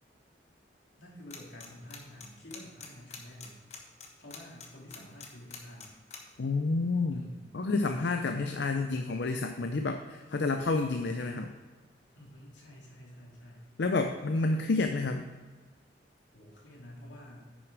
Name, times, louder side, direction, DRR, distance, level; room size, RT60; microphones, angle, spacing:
voice 1, 1.0-3.6 4.2-5.9 7.1-7.4 8.0-8.9 12.1-13.6 14.4-14.7 16.3-17.6, equal, 85° left, -3 dB, 2.7 m, -50 dB
sound 1, 1.3-1.7 1.9-6.2, left 6 dB, 35° left, 1.2 m, -44 dB
voice 2, 6.4-7.3 7.5-11.5 13.8-15.3, left 3 dB, 70° left, 6 dB, 0.5 m, -29 dB
9.8 x 6.5 x 4.7 m, 1.4 s
head